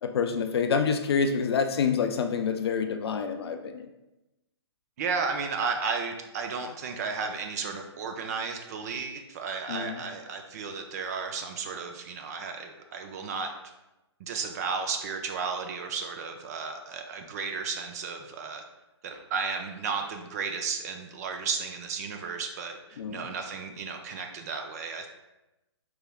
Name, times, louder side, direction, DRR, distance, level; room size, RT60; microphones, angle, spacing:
voice 1, 0.0-3.9 9.7-10.0 23.0-23.3, left 6 dB, 65° left, 7 dB, 0.4 m, -27 dB
voice 2, 5.0-13.5 14.2-18.6 19.0-25.1, right 5 dB, 35° right, 4 dB, 0.3 m, -33 dB
4.5 x 3.2 x 2.3 m, 0.97 s
hypercardioid pair, 135°, 14 cm